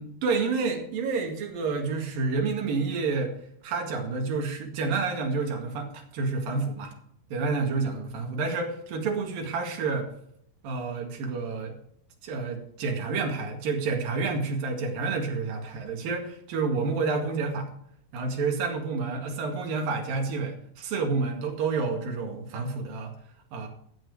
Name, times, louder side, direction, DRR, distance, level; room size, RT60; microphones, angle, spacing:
voice 1, 0.0-3.3 3.6-6.9 7.3-10.1 10.6-11.7 12.2-17.7 18.1-23.1 23.5-23.7, right 4 dB, 65° right, 2 dB, 3.7 m, -29 dB
13.5 x 9.0 x 4.9 m, 0.70 s
omnidirectional pair, 4.5 m